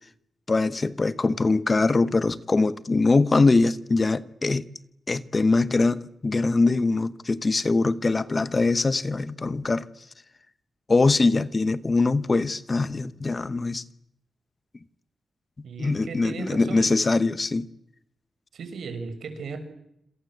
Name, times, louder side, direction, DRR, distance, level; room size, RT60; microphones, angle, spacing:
voice 1, 0.5-4.7 5.1-9.9 10.9-13.8 15.8-17.7, left 3 dB, 25° left, 1.0 m, -22 dB
voice 2, 15.6-16.9 18.5-19.6, right 5 dB, 90° right, 6.5 m, -36 dB
27.5 x 27.0 x 7.9 m
wide cardioid pair, 175°, 0 cm